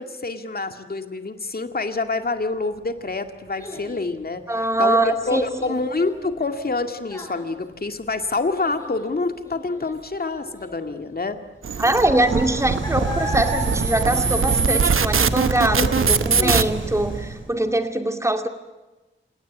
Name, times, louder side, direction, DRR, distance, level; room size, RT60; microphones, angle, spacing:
voice 1, 0.0-4.4 4.8-5.0 5.3-11.4 15.7-16.6, left 3 dB, 50° left, 7 dB, 2.2 m, -27 dB
Child speech kid speaking, 2.4-15.0 15.4-15.8 16.3-16.4, equal, 15° left, 7.8 m, -37 dB
voice 2, 4.5-5.5 11.8-18.5, right 1 dB, 15° right, 7 dB, 2.5 m, -22 dB
sound 1, 11.6-16.6, right 6 dB, 90° right, 1.0 m, -22 dB
sound 2, 11.8-17.5, right 3 dB, 70° right, 6.3 m, -28 dB
29.0 x 18.0 x 8.4 m, 1.1 s
wide cardioid pair, 95°, 21 cm